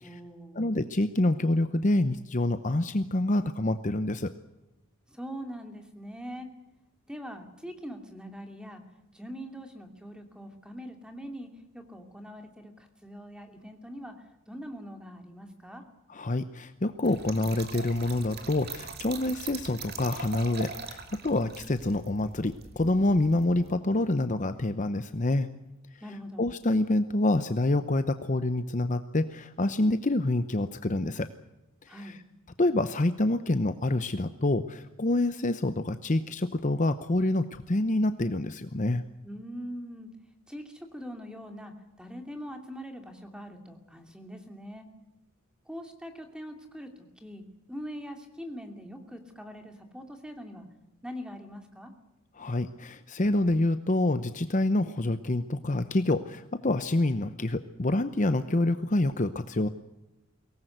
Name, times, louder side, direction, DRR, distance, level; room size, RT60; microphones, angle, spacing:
voice 1, 0.0-0.7 5.1-6.5 7.1-8.8 9.1-15.8 26.0-26.4 31.9-32.2 39.2-40.1 40.5-44.9 45.7-46.9 47.2-50.7 51.0-51.9, equal, 5° right, 5 dB, 2.7 m, -42 dB
voice 2, 0.5-4.3 16.1-25.5 26.4-31.3 31.9-32.2 32.6-39.0 52.4-59.7, left 2 dB, 35° left, 11 dB, 0.8 m, -27 dB
Trickle dribble / Fill (with liquid), 17.0-23.8, right 5 dB, 45° right, 2.5 m, -42 dB
23.5 x 19.0 x 8.0 m, 0.97 s
head